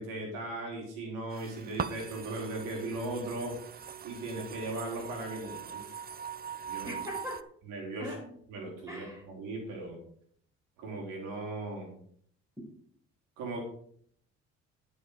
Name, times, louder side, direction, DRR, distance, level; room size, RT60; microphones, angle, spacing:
voice 1, 0.0-3.6 4.0-5.8 6.7-7.0 7.6-8.1 8.5-10.0 10.8-11.9 13.4-13.6, right 2 dB, 85° right, 1 dB, 4.1 m, -38 dB
sound 1, 1.3-7.4, right 7 dB, 30° right, 0.6 m, -41 dB
voice 2, 6.8-7.4 8.0-8.3 8.9-9.2, equal, 10° right, -1 dB, 5.3 m, -40 dB
11.0 x 7.0 x 5.0 m, 0.62 s
supercardioid pair, 80°, 30 cm